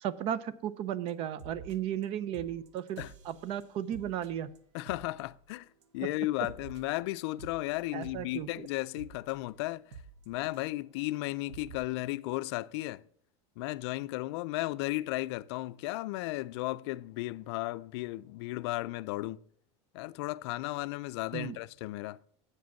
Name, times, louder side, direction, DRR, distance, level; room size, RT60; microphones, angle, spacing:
voice 1, 0.0-4.5 6.0-6.1 7.9-8.7 21.3-21.6, right 10 dB, 40° right, 0.5 m, -35 dB
sound 1, 1.1-1.2 1.4-2.1 2.3-5.8 6.1-10.9 11.2-11.3 11.5-11.8, right 4 dB, 90° right, 1.0 m, -51 dB
voice 2, 4.7-5.7 5.9-10.0 10.3-13.0 13.6-19.4 19.9-22.2, left 19 dB, 70° left, 0.4 m, -35 dB
8.1 x 5.2 x 7.0 m
supercardioid pair, 155°, 15 cm